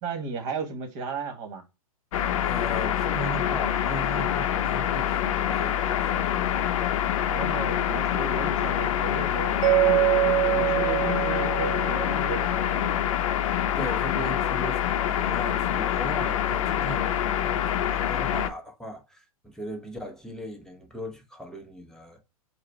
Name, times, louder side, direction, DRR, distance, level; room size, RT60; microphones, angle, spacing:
voice 1, 0.0-1.6 7.3-10.0 10.5-12.9, right 4 dB, 40° right, 1.4 m, -35 dB
sound 1, 2.1-18.5, left 10 dB, 60° left, 0.7 m, -26 dB
voice 2, 2.4-6.4 13.7-22.2, equal, 5° left, 0.8 m, -38 dB
Mallet percussion, 9.6-12.6, right 19 dB, 65° right, 0.8 m, -24 dB
4.8 x 2.1 x 4.3 m
hypercardioid pair, 125°, 19 cm